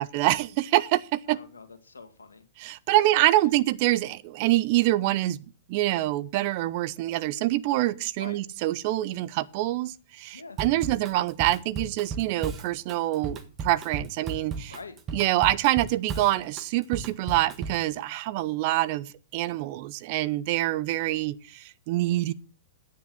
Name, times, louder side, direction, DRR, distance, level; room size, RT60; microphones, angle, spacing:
voice 1, 0.0-1.4 2.6-5.4 5.7-14.8 15.1-22.3, right 16 dB, 45° right, 0.6 m, -26 dB
voice 2, 1.3-2.4 2.9-3.6 8.2-8.4 10.3-10.6 14.7-15.0, left 4 dB, 85° left, 1.8 m, -46 dB
Drum kit / Drum, 10.6-17.9, right 4 dB, 25° right, 1.5 m, -36 dB
9.4 x 7.5 x 7.8 m
figure-of-eight pair, 110°, 0 cm